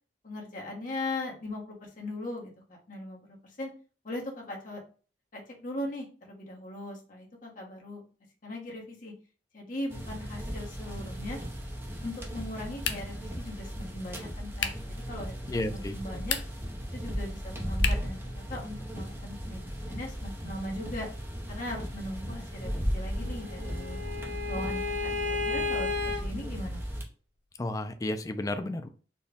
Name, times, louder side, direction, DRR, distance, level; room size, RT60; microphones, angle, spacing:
voice 1, 0.2-3.7 4.0-4.8 5.3-8.0 8.4-9.1 9.5-11.4 12.0-15.4 15.7-16.4 16.9-19.6 19.9-21.1 21.5-24.0 24.5-25.9 26.2-26.8, left 1 dB, 50° left, -1 dB, 1.1 m, -39 dB
sound 1, 9.9-27.0, equal, 15° right, 0.7 m, -36 dB
sound 2, 12.8-13.3 14.6-14.9 16.1-16.7 17.8-18.2, left 7 dB, 80° left, 0.5 m, -33 dB
voice 2, 15.5-16.0 27.6-28.9, left 1 dB, 20° left, 9 dB, 0.3 m, -32 dB
Bowed string instrument, 23.1-26.2, left 4 dB, 75° right, 1.3 m, -33 dB
4.3 x 2.2 x 3.4 m, 0.38 s
head